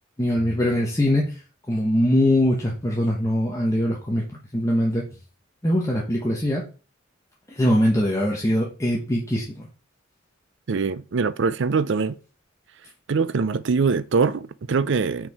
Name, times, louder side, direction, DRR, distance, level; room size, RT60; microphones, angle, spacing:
voice 1, 0.2-1.3 1.7-4.2 4.5-5.1 5.6-6.6 7.5-9.7, left 1 dB, 15° left, 1.0 m, -22 dB
voice 2, 10.7-12.2 13.1-15.3, right 4 dB, 65° right, 0.5 m, -23 dB
6.0 x 4.6 x 4.7 m
head